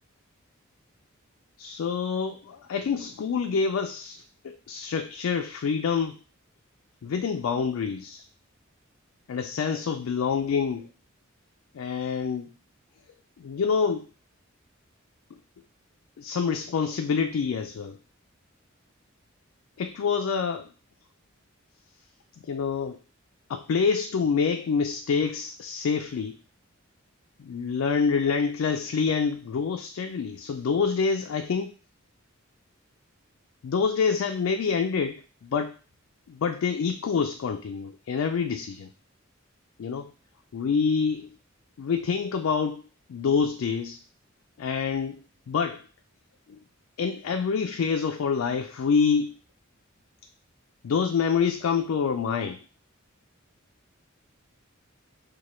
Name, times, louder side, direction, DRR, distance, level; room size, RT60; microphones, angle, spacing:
voice 1, 1.6-6.2 7.0-8.2 9.3-10.9 11.7-12.5 13.4-14.1 16.2-18.0 19.8-20.7 22.4-23.0 23.5-26.4 27.4-31.7 33.6-35.7 36.3-38.9 39.8-40.1 40.5-41.3 41.8-42.8 43.1-44.0 44.6-45.2 45.5-45.8 46.5-46.6 47.0-49.3 50.8-52.6, left 5 dB, 80° left, 6 dB, 0.4 m, -27 dB
4.8 x 2.2 x 4.2 m, 0.36 s
head